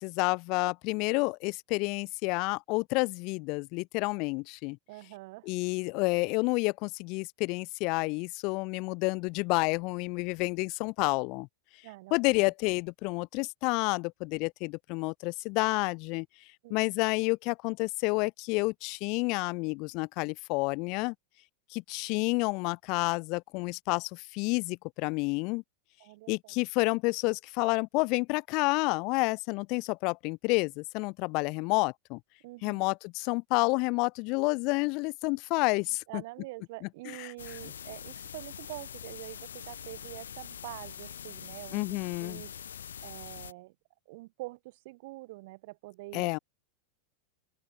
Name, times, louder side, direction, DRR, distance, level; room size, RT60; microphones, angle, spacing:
voice 1, 0.0-4.8 5.5-11.5 12.1-16.3 16.7-21.1 21.7-25.6 26.3-32.2 32.6-36.2 37.1-37.3 41.7-42.4 46.1-46.4, left 28 dB, 45° left, 0.4 m, -29 dB
voice 2, 4.9-5.5 11.8-12.5 16.6-16.9 26.0-26.5 32.4-32.9 36.1-42.5 43.0-43.7 44.1-46.3, right 21 dB, 50° right, 1.9 m, -45 dB
sound 1, 37.4-43.5, left 8 dB, 65° left, 0.8 m, -44 dB
open air
figure-of-eight pair, 90°, 0 cm